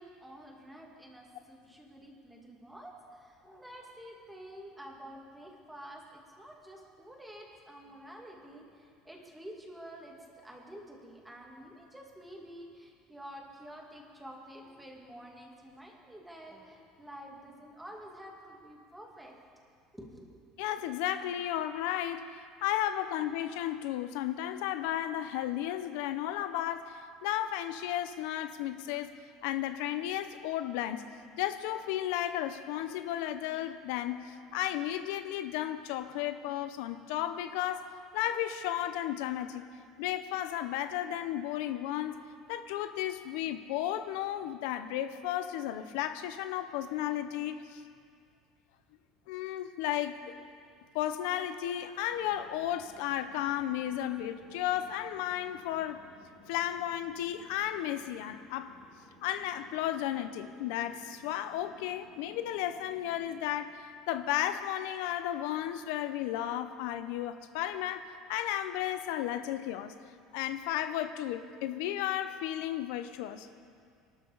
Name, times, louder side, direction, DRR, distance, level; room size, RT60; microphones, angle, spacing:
voice 1, 0.0-10.2 10.4-19.3 19.9-20.3, equal, 5° right, 0 dB, 2.0 m, -49 dB
voice 2, 20.6-29.1 29.4-31.1 31.4-39.6 40.0-42.2 42.5-47.8 49.3-50.3 50.9-56.0 56.5-58.8 59.2-69.9 70.3-73.5, left 12 dB, 80° left, 11 dB, 0.7 m, -34 dB
sound 1, 52.1-63.6, left 3 dB, 20° left, 3.3 m, -58 dB
24.0 x 12.5 x 4.0 m, 2.2 s
cardioid pair, 155°, 0 cm